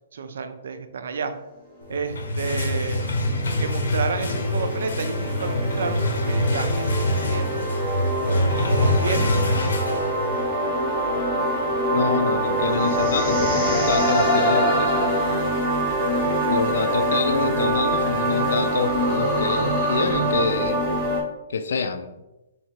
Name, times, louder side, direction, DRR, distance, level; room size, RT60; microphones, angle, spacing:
voice 1, 0.1-1.3 1.9-3.1 3.6-7.7 8.2-9.6 15.9-16.6, right 5 dB, 55° right, 9 dB, 0.4 m, -31 dB
sound 1, 1.9-10.6, left 1 dB, 75° left, 0.8 m, -25 dB
sound 2, 1.9-21.2, right 1 dB, ahead, 0.7 m, -24 dB
sound 3, 11.8-14.9 15.3-15.6, left 1 dB, 35° left, 0.7 m, -38 dB
voice 2, 11.9-15.1 16.5-20.8 21.5-22.1, left 5 dB, 55° left, 8 dB, 0.4 m, -26 dB
3.2 x 2.8 x 4.5 m, 0.96 s
hypercardioid pair, 180°, 0 cm